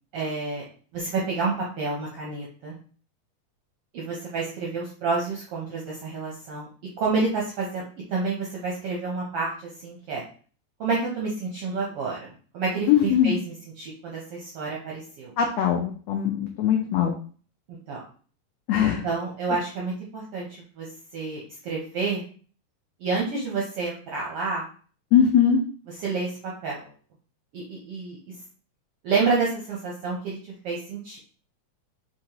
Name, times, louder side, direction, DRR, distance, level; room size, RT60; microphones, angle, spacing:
voice 1, 0.1-0.6 0.9-2.8 3.9-6.7 7.0-7.8 8.1-10.2 10.8-13.4 13.8-15.3 17.7-18.0 19.0-20.5 20.8-20.9 21.1-22.2 23.0-24.6 26.0-26.9 27.5-28.2 29.0-30.4 30.6-31.2, right 4 dB, 75° right, -3 dB, 1.3 m, -29 dB
voice 2, 12.9-13.3 15.4-17.1 18.7-19.1 25.1-25.6, left 9 dB, 85° left, 2 dB, 1.4 m, -21 dB
5.1 x 2.9 x 2.9 m, 0.42 s
omnidirectional pair, 3.5 m